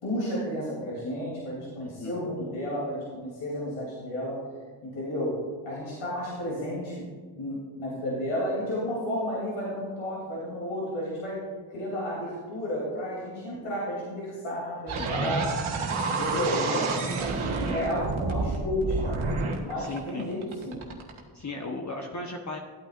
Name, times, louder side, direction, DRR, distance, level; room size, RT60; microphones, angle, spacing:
voice 1, 0.0-4.4 4.8-5.3 5.6-7.1 7.4-11.4 11.7-15.5 16.1-19.2 19.6-20.8, equal, 80° left, -6 dB, 3.1 m, -32 dB
voice 2, 1.8-2.1 15.0-15.4 19.8-20.3 21.3-22.6, left 2 dB, 35° left, 1 dB, 1.0 m, -36 dB
sound 1, 14.9-21.2, right 3 dB, 80° right, 1.4 m, -29 dB
14.5 x 8.7 x 2.5 m, 1.5 s
cardioid pair, 55°, 48 cm